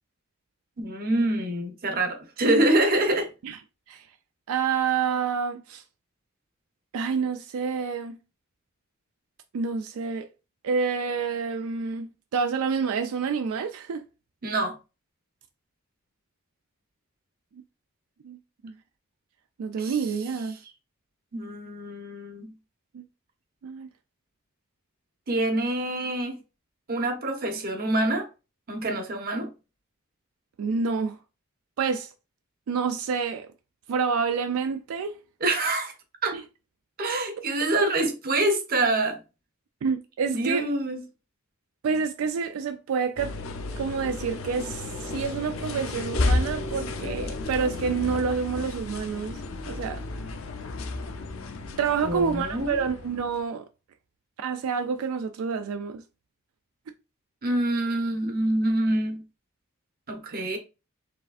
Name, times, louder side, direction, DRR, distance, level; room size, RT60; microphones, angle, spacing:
voice 1, 0.8-3.3 14.4-14.7 19.8-20.0 21.3-22.5 25.3-26.4 26.9-28.3 28.7-29.5 35.4-35.9 36.2-36.4 37.0-39.2 40.3-41.0 52.0-52.8 57.4-59.2 60.1-60.6, right 1 dB, 45° right, 0.9 m, -26 dB
voice 2, 4.5-5.8 6.9-8.2 9.5-10.3 10.6-14.0 18.2-18.7 19.6-20.6 22.9-23.0 23.6-23.9 30.6-31.2 31.8-32.1 32.7-33.5 33.9-35.2 36.3-36.4 37.8-37.9 39.8-40.7 41.8-43.4 43.8-49.4 49.7-50.0 51.8-53.7 54.4-56.0, right 5 dB, 85° right, 0.4 m, -28 dB
sound 1, 43.2-53.4, left 2 dB, 75° left, 0.6 m, -32 dB
4.9 x 3.3 x 2.4 m
head